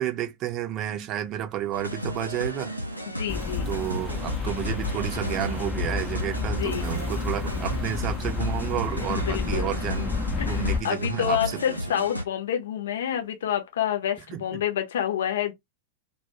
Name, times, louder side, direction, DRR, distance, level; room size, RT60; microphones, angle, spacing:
voice 1, 0.0-2.7 3.7-10.1 10.5-12.0 14.3-14.4, right 12 dB, 35° right, 0.6 m, -31 dB
sound 1, 1.7-12.2, equal, 90° left, 0.5 m, -33 dB
voice 2, 3.1-3.7 6.5-6.9 9.1-9.8 10.4-15.5, left 10 dB, 60° left, 0.7 m, -28 dB
sound 2, 3.3-10.8, left 5 dB, 15° left, 0.6 m, -30 dB
2.3 x 2.3 x 2.9 m
figure-of-eight pair, 90°, 0 cm